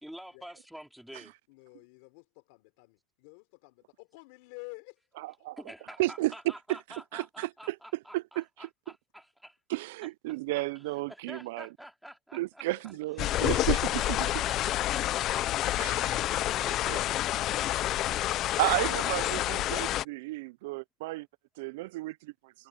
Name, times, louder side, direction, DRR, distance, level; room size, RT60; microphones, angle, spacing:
voice 1, 0.0-1.3 5.6-9.6 10.5-12.6 13.3-15.8 16.1-18.5, equal, ahead, 3.2 m, -49 dB
voice 2, 1.5-5.5 12.7-12.9, left 30 dB, 70° left, 3.8 m, -51 dB
voice 3, 6.0-6.3 6.7-6.8 7.1-7.8 8.1-8.7 9.7-11.7 12.3-14.3 15.8-16.1 16.9-17.0 18.6-21.3 21.6-22.5, right 20 dB, 80° right, 0.4 m, -33 dB
sound 1, 13.2-20.0, left 14 dB, 40° left, 0.4 m, -28 dB
cardioid pair, 160°, 0 cm